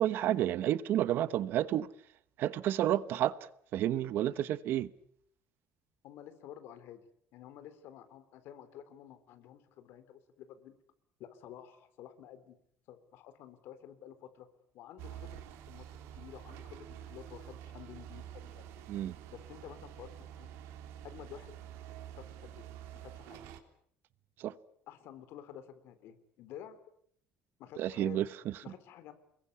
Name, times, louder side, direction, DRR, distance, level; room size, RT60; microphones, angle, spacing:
voice 1, 0.0-1.9 2.4-3.4 3.7-4.9 18.9-19.2 24.4-24.5 27.8-28.5, right 12 dB, 50° right, 1.0 m, -30 dB
voice 2, 6.0-7.0 7.3-10.8 11.2-12.6 12.9-14.5 14.7-18.8 19.3-20.5 21.0-21.5 22.2-22.7 22.9-23.4 24.9-26.8 27.6-28.2 28.6-29.1, left 10 dB, 60° left, 3.6 m, -51 dB
sound 1, 15.0-23.6, right 10 dB, 90° right, 3.3 m, -48 dB
28.5 x 22.0 x 8.5 m
cardioid pair, 175°, 4 cm